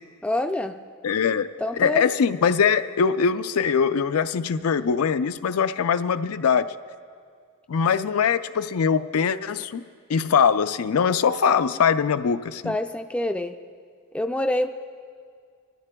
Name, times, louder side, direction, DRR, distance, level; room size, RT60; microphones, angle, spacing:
voice 1, 0.2-0.7 1.6-2.1 12.6-13.6 14.1-14.7, left 1 dB, 5° left, 7 dB, 0.3 m, -26 dB
voice 2, 1.0-1.5 1.8-6.7 7.7-9.8 10.1-12.7, left 6 dB, 85° left, 11 dB, 0.4 m, -22 dB
30.0 x 13.0 x 2.3 m, 2.2 s
head